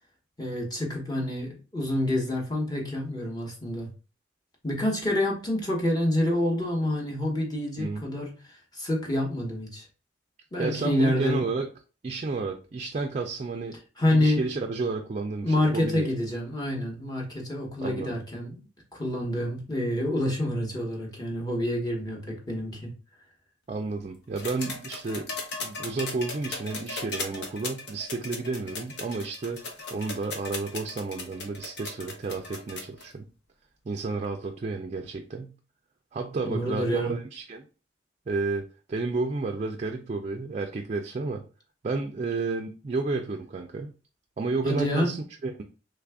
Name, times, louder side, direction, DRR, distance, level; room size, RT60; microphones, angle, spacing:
voice 1, 0.4-3.9 4.6-9.9 10.5-11.4 14.0-14.4 15.4-22.9 36.4-37.2 44.6-45.2, left 1 dB, 20° left, -1 dB, 1.0 m, -28 dB
voice 2, 10.6-11.7 12.0-13.8 14.1-16.1 17.8-18.1 23.7-25.3 25.6-29.6 29.9-33.3 33.9-35.5 36.1-37.6 38.3-41.4 41.8-43.9 44.4-45.6, right 3 dB, 35° right, 4 dB, 0.3 m, -31 dB
sound 1, 24.4-33.0 34.2-34.3, left 3 dB, 65° left, 0.8 m, -37 dB
3.3 x 2.4 x 3.4 m, 0.35 s
head